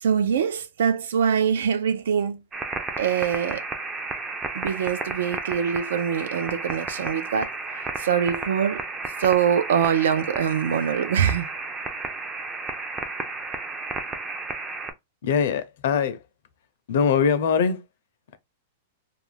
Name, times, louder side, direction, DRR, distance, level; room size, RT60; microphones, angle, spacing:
voice 1, 0.0-2.4 3.0-3.6 4.5-8.8 9.2-11.5, right 8 dB, 80° right, 0.5 m, -24 dB
sound 1, 2.5-14.9, right 3 dB, 15° right, 0.4 m, -33 dB
voice 2, 15.2-16.2 16.9-17.8, left 6 dB, 65° left, 0.6 m, -22 dB
2.4 x 2.2 x 3.2 m
supercardioid pair, 160°, 0 cm